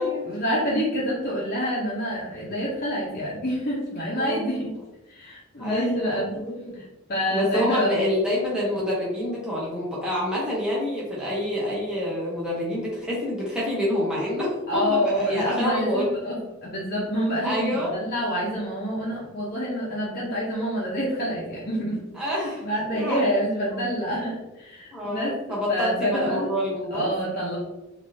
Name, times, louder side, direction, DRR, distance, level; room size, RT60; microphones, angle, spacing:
voice 1, 0.0-4.7 5.1-6.4 7.1-8.1 14.7-22.0 22.3-26.5 26.9-27.6, equal, 45° left, -6 dB, 0.7 m, -27 dB
voice 2, 5.6-6.6 7.3-16.4 17.4-17.9 22.1-22.6 22.9-23.3 23.6-23.8 24.9-27.1, left 1 dB, 5° right, -7 dB, 0.8 m, -27 dB
3.4 x 2.5 x 2.6 m, 1.0 s
head